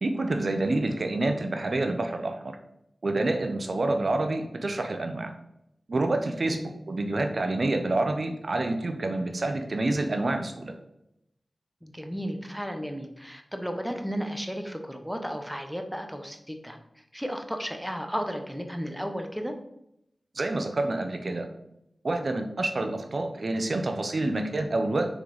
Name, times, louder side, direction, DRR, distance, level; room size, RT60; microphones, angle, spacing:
voice 1, 0.0-2.6 3.0-5.3 5.9-6.6 6.9-10.7 20.3-21.5 22.0-25.1, right 2 dB, 55° right, 5 dB, 0.8 m, -27 dB
voice 2, 11.8-16.8 17.1-19.5, equal, ahead, 5 dB, 0.9 m, -34 dB
6.5 x 4.0 x 5.0 m, 0.80 s
wide cardioid pair, 70°, 0 cm